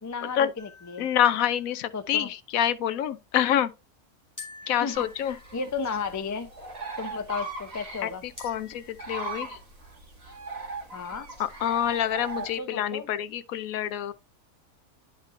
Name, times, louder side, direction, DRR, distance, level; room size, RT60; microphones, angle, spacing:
voice 1, 0.0-1.1 1.9-2.3 4.8-6.5 7.0-8.2 10.9-11.3 12.4-13.1, left 5 dB, 30° left, 0.3 m, -34 dB
sound 1, 0.6-2.0 4.4-6.0 8.4-9.5, left 3 dB, 10° left, 2.8 m, -48 dB
voice 2, 1.0-3.7 4.7-5.3 8.0-8.1 8.4-9.6 11.6-14.1, left 10 dB, 75° left, 1.0 m, -26 dB
sound 2, 4.9-12.5, right 2 dB, 45° right, 2.5 m, -39 dB
10.5 x 5.2 x 2.5 m
omnidirectional pair, 1.5 m